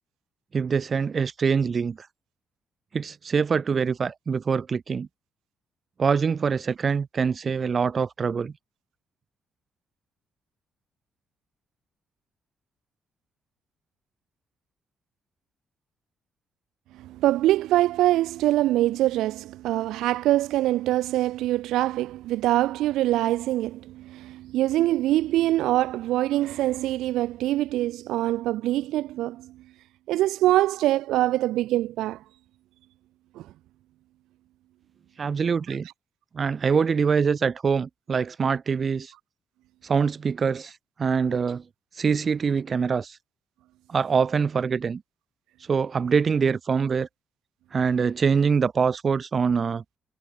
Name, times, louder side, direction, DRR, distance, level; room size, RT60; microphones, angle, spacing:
voice 1, 0.5-2.1 2.9-5.1 6.0-8.5 35.2-35.9 36.3-39.1 39.8-41.6 41.9-43.2 43.9-45.0 45.6-47.1 47.7-49.8, right 6 dB, 40° right, 1.4 m, -24 dB
voice 2, 17.0-29.6 30.1-32.2 33.3-33.5, right 15 dB, 90° right, 1.0 m, -24 dB
cardioid pair, 90°, 0 cm